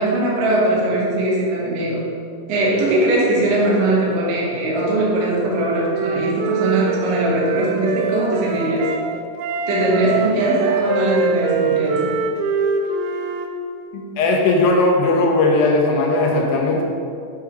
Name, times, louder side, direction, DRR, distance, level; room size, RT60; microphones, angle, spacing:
voice 1, 0.0-2.0 2.5-8.9 9.7-12.1, right 1 dB, 65° right, -5 dB, 3.0 m, -20 dB
Wind instrument woodwind instrument, 5.4-9.0 9.4-13.5, right 4 dB, 85° right, 2.8 m, -24 dB
voice 2, 13.9-16.8, left 2 dB, 80° left, 0 dB, 2.9 m, -17 dB
8.8 x 4.8 x 4.8 m, 2.5 s
omnidirectional pair, 4.9 m